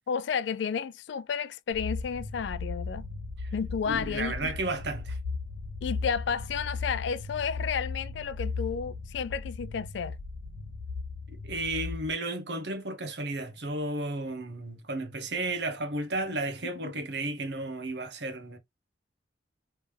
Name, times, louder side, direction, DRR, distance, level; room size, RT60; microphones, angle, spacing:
voice 1, 0.1-3.1 3.5-4.5 5.8-10.2 16.8-16.9, left 6 dB, 70° left, 0.4 m, -32 dB
sound 1, 1.7-12.1, left 4 dB, 80° right, 1.8 m, -37 dB
voice 2, 3.9-5.2 11.3-18.6, right 2 dB, 60° right, 0.9 m, -33 dB
3.3 x 2.9 x 3.3 m
head